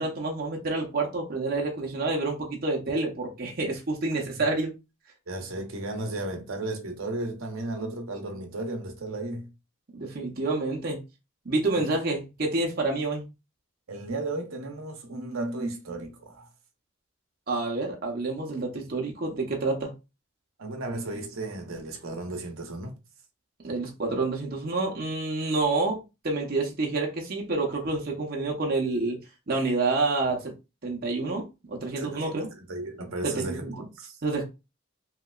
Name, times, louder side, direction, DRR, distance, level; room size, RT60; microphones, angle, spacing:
voice 1, 0.0-4.7 9.9-11.0 11.5-13.3 17.5-19.9 23.6-29.2 29.5-30.5 30.8-32.5 33.2-33.9 34.2-34.4, right 3 dB, 45° right, 0.7 m, -28 dB
voice 2, 5.3-9.5 11.7-11.8 13.9-16.5 20.6-22.9 31.9-34.2, right 2 dB, 75° right, 0.8 m, -34 dB
3.2 x 2.9 x 2.3 m
head